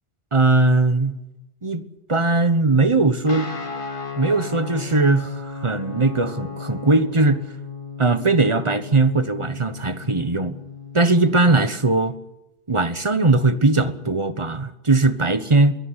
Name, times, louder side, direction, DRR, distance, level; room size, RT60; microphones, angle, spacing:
voice 1, 0.3-1.2 1.6-1.8 2.1-3.5 4.2-7.4 8.0-10.5 10.9-12.2 12.7-15.8, right 3 dB, 25° right, 12 dB, 1.1 m, -19 dB
Guitar, 3.3-11.3, left 4 dB, 45° left, 2.7 m, -35 dB
21.5 x 16.5 x 9.8 m, 0.95 s
omnidirectional pair, 1.2 m